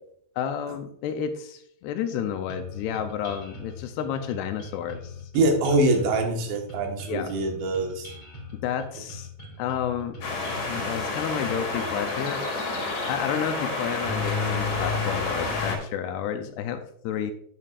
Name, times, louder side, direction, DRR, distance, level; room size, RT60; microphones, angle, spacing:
voice 1, 0.4-5.3 7.1-7.3 8.5-9.3 9.6-10.2 10.5-17.3, left 8 dB, 85° left, 7 dB, 2.5 m, -31 dB
sound 1, 2.5-12.1, left 2 dB, 15° left, 1.8 m, -42 dB
voice 2, 5.4-8.1, right 2 dB, 85° right, 3 dB, 3.7 m, -24 dB
sound 2, 10.2-15.8, left 3 dB, 65° left, 3.6 m, -29 dB
9.1 x 8.5 x 2.4 m, 0.66 s
omnidirectional pair, 5.0 m